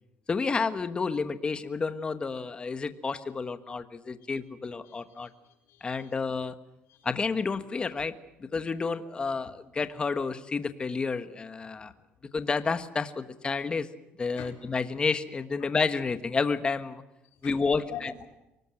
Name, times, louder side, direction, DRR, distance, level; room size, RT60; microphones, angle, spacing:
voice 1, 0.3-5.3 5.8-6.5 7.0-8.1 8.4-11.9 12.3-13.9 14.2-17.0 17.4-18.1, left 4 dB, 25° left, 11 dB, 1.4 m, -30 dB
voice 2, 4.8-6.1 6.9-7.1 8.0-8.1 11.6-12.1 14.4-14.6 15.6-15.7 17.2-18.3, left 10 dB, 85° left, 3 dB, 4.8 m, -47 dB
24.0 x 19.0 x 7.8 m, 0.93 s
cardioid pair, 130°, 4 cm